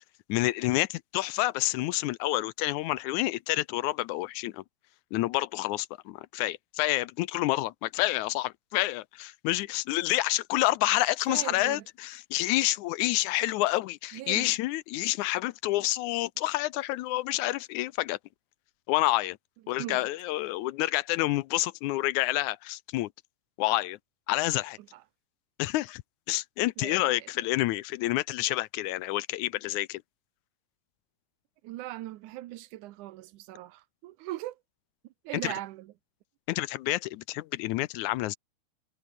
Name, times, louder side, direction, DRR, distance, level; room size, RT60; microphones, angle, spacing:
voice 1, 0.3-4.6 5.1-18.2 18.9-19.4 19.7-23.1 23.6-24.0 24.3-24.8 25.6-26.0 26.3-30.0 35.4-35.5 36.5-38.4, left 17 dB, 80° left, 2.0 m, -28 dB
voice 2, 11.3-11.8 14.1-14.5 19.8-20.0 24.9-25.0 26.8-27.3 31.6-34.6 35.2-35.9, right 16 dB, 85° right, 2.3 m, -39 dB
omnidirectional pair, 3.6 m